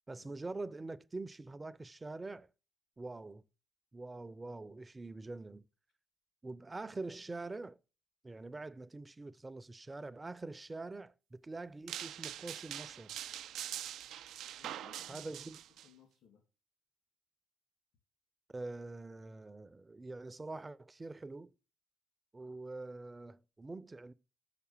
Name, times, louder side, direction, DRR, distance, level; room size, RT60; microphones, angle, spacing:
voice 1, 0.1-2.5 3.0-3.4 3.9-5.6 6.4-7.8 8.2-13.1 15.1-15.6 18.5-21.5 22.3-24.1, right 2 dB, 20° right, 0.5 m, -45 dB
sound 1, 11.9-15.9, right 11 dB, 80° right, 0.3 m, -44 dB
voice 2, 14.6-15.3 15.8-16.4, left 8 dB, 85° left, 2.8 m, -62 dB
6.6 x 5.9 x 7.3 m
cardioid pair, 90°, 0 cm